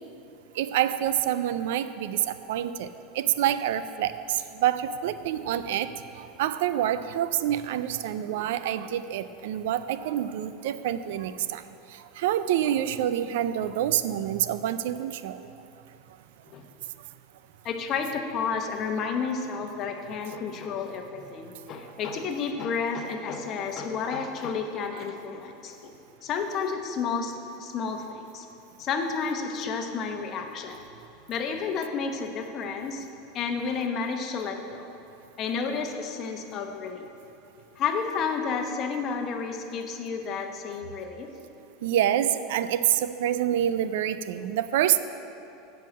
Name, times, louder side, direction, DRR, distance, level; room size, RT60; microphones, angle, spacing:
voice 1, 0.6-11.6 11.9-15.4 41.8-45.0, right 11 dB, 75° right, 13 dB, 0.4 m, -27 dB
voice 2, 17.6-25.9 26.2-28.5 28.8-30.8 31.3-33.1 33.3-34.9 35.4-37.1 37.8-41.3, left 5 dB, 40° left, 4 dB, 0.9 m, -31 dB
7.6 x 5.6 x 7.5 m, 2.8 s
supercardioid pair, 125°, 0 cm